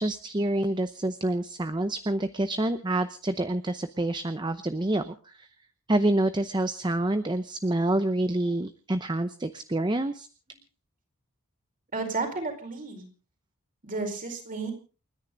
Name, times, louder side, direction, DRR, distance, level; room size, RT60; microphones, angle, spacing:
voice 1, 0.0-5.5 5.9-10.3, right 1 dB, 20° right, 10 dB, 0.7 m, -27 dB
voice 2, 11.9-13.1 13.8-14.7, right 3 dB, 40° right, 3 dB, 4.8 m, -32 dB
29.5 x 10.5 x 3.9 m, 0.37 s
head